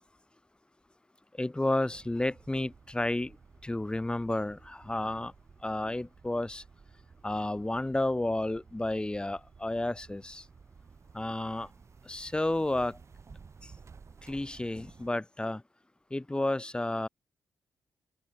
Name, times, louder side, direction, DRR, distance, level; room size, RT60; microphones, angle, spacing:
voice 1, 1.4-3.4 3.6-5.3 5.6-6.6 7.2-10.4 11.1-11.7 12.1-13.0 14.2-15.6 16.1-17.1, left 1 dB, 15° left, 2.2 m, -31 dB
sound 1, 1.9-15.1, right 5 dB, 45° right, 5.4 m, -55 dB
cardioid pair, 65°, 6 cm